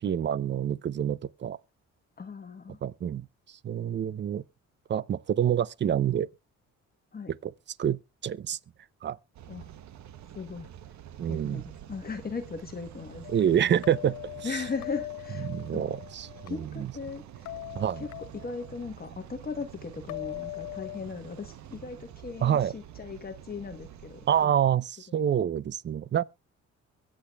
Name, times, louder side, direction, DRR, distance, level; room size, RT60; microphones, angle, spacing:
voice 1, 0.0-1.6 2.8-4.4 4.9-6.3 7.4-7.5 7.8-8.6 9.0-9.2 11.2-11.6 13.3-14.6 15.4-16.9 17.7-18.1 22.4-22.7 24.3-26.2, right 9 dB, 40° right, 0.5 m, -27 dB
voice 2, 2.2-2.8 7.1-7.3 9.5-9.7 10.3-10.7 11.3-13.3 14.4-15.9 16.5-17.5 18.0-18.1 18.4-24.5 25.1-25.3, left 5 dB, 30° left, 1.1 m, -38 dB
sound 1, 9.3-24.5, right 11 dB, 65° right, 0.9 m, -48 dB
sound 2, 13.2-16.5 17.5-18.7 20.1-21.0, left 18 dB, 70° left, 0.5 m, -40 dB
23.0 x 8.3 x 2.3 m
cardioid pair, 90°, 30 cm